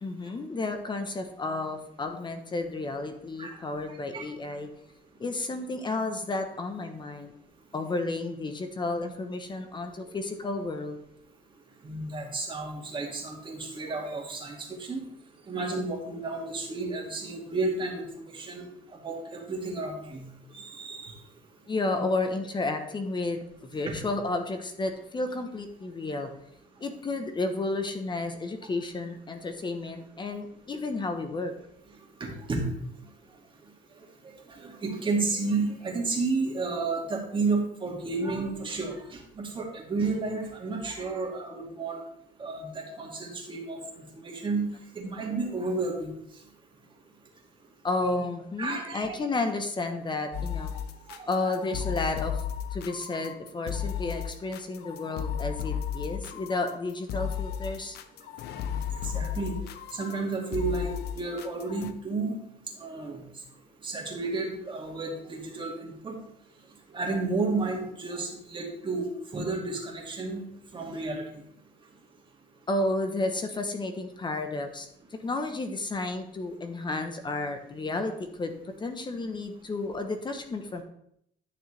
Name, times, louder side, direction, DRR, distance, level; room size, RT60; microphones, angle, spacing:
voice 1, 0.0-4.7 5.2-7.3 7.7-11.0 21.7-23.4 23.7-26.3 26.8-31.5 47.8-50.7 51.3-52.4 52.7-58.0 72.7-78.5 78.8-80.8, left 2 dB, 25° left, 6 dB, 1.0 m, -32 dB
voice 2, 11.8-15.1 15.5-18.6 19.0-20.2 20.5-21.1 23.9-24.0 32.2-32.7 34.5-42.0 42.4-44.7 44.9-46.1 48.6-49.2 51.1-51.4 59.0-59.6 59.9-62.4 62.8-63.2 63.8-66.2 66.9-70.4 70.7-71.2, right 3 dB, 30° right, 0 dB, 2.2 m, -32 dB
sound 1, 50.3-61.9, left 8 dB, 75° left, 0.7 m, -34 dB
11.0 x 6.5 x 3.3 m, 0.73 s
cardioid pair, 110°, 17 cm